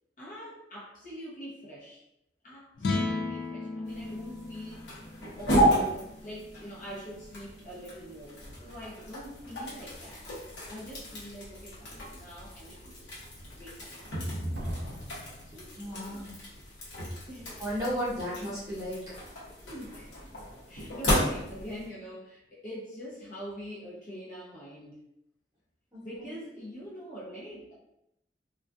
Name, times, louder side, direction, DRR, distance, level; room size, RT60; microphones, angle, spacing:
voice 1, 0.2-2.0 2.4-4.9 5.3-10.2 10.7-13.1 13.5-13.9 15.5-16.4 17.3-17.5 19.6-20.1 20.7-25.0 26.0-27.7, equal, 45° left, -6 dB, 0.7 m, -44 dB
sound 1, 2.7-9.1, left 3 dB, 70° left, 0.3 m, -37 dB
sound 2, 3.9-21.9, equal, 85° left, 0.9 m, -33 dB
Slam, 11.4-11.5 12.1-12.5 14.5-16.4 16.7-16.8, equal, 70° right, 0.5 m, -45 dB
voice 2, 15.8-16.3 17.6-19.0 25.9-26.0, equal, 20° right, -9 dB, 1.0 m, -33 dB
2.5 x 2.2 x 2.3 m, 0.82 s
head